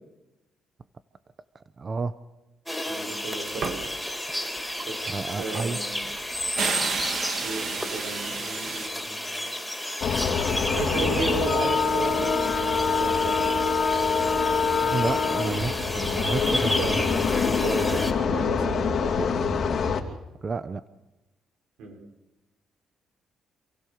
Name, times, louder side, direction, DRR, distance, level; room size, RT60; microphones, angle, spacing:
voice 1, 1.8-2.1 5.1-5.8 14.8-17.2 20.4-20.8, right 4 dB, 35° right, 12 dB, 0.8 m, -30 dB
sound 1, 2.7-18.1, left 1 dB, ahead, 3.4 m, -32 dB
voice 2, 2.9-3.9 4.9-6.0 7.4-9.4 10.7-13.5 16.5-19.3 21.8-22.0, right 3 dB, 90° right, 2 dB, 4.8 m, -34 dB
sound 2, 3.5-4.1 4.4-8.9, right 5 dB, 60° right, 2.2 m, -32 dB
sound 3, 10.0-20.0, left 5 dB, 55° left, 2.8 m, -25 dB
27.5 x 16.0 x 6.6 m, 1.0 s
cardioid pair, 90°, 0 cm